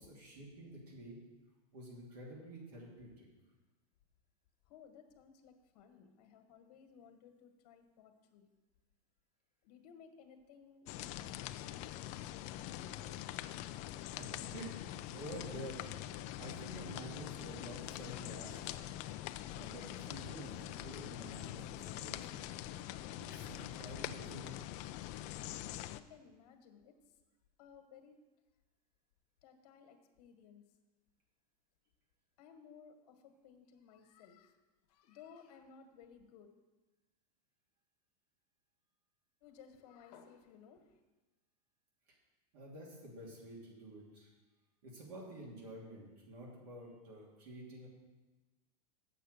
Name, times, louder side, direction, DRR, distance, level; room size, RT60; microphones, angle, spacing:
voice 1, 0.1-1.2 1.7-3.3 13.8-16.0 16.4-18.9 19.2-22.4 23.2-24.6 42.5-44.3 44.8-47.9, right 1 dB, 75° right, -3 dB, 2.8 m, -50 dB
voice 2, 4.6-8.5 9.6-10.9 12.3-13.1 25.5-27.2 27.6-28.2 29.4-30.8 32.4-34.6 34.9-36.5 39.4-41.0, left 7 dB, 65° left, 6 dB, 1.4 m, -59 dB
sound 1, 10.9-26.0, left 13 dB, 35° left, 0.3 m, -44 dB
8.1 x 6.9 x 6.5 m, 1.2 s
supercardioid pair, 145°, 20 cm